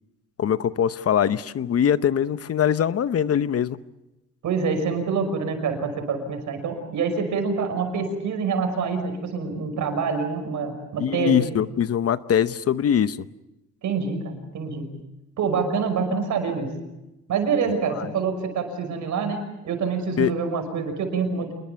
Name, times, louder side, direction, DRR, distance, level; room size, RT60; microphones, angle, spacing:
voice 1, 0.4-3.8 11.0-13.2 18.0-18.1 20.2-20.3, left 9 dB, 50° left, 14 dB, 0.9 m, -22 dB
voice 2, 4.4-11.4 13.8-14.8 15.4-16.7 17.3-21.5, right 5 dB, 75° right, 7 dB, 5.7 m, -26 dB
28.0 x 21.0 x 6.9 m, 0.97 s
cardioid pair, 90°, 30 cm